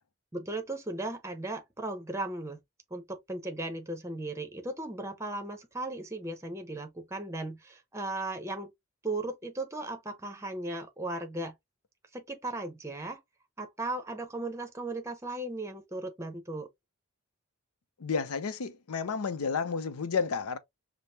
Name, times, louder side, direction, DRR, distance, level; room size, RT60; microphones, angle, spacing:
voice 1, 0.3-2.6 2.9-8.7 9.0-11.5 12.1-13.2 13.6-16.7, right 2 dB, 15° right, 0.7 m, -36 dB
voice 2, 18.0-20.6, left 5 dB, 75° left, 0.6 m, -31 dB
5.0 x 2.1 x 2.8 m
head